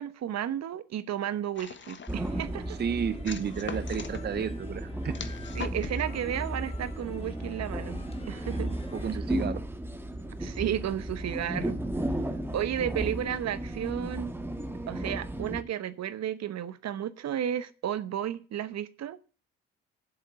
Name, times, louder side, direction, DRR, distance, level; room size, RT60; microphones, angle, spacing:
voice 1, 0.0-2.8 5.6-8.0 8.3-8.7 10.4-11.8 12.5-14.3 14.9-19.2, right 10 dB, 55° right, 1.1 m, -33 dB
sound 1, 1.6-2.3 3.3-4.2 5.1-6.0, left 6 dB, 35° left, 1.2 m, -41 dB
sound 2, 2.1-15.6, right 1 dB, 5° right, 1.6 m, -34 dB
sound 3, 2.2-9.2, left 3 dB, 20° left, 1.7 m, -49 dB
voice 2, 2.7-5.2 8.9-9.6, right 7 dB, 30° right, 0.8 m, -32 dB
8.0 x 7.6 x 7.6 m
hypercardioid pair, 55°, 32 cm